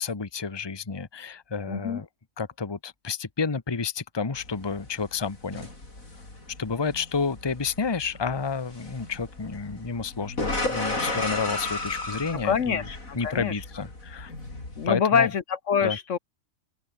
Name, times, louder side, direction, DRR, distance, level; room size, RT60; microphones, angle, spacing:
voice 1, 0.0-2.1 2.4-5.7 6.6-12.8 13.1-14.3 14.9-15.3 15.8-16.0, left 5 dB, 20° left, 1.1 m, -30 dB
voice 2, 1.7-2.0 12.4-13.5 14.8-16.2, left 7 dB, 65° left, 1.4 m, -25 dB
sound 1, 4.4-14.9, left 2 dB, 90° left, 6.1 m, -35 dB
open air
omnidirectional pair, 1.4 m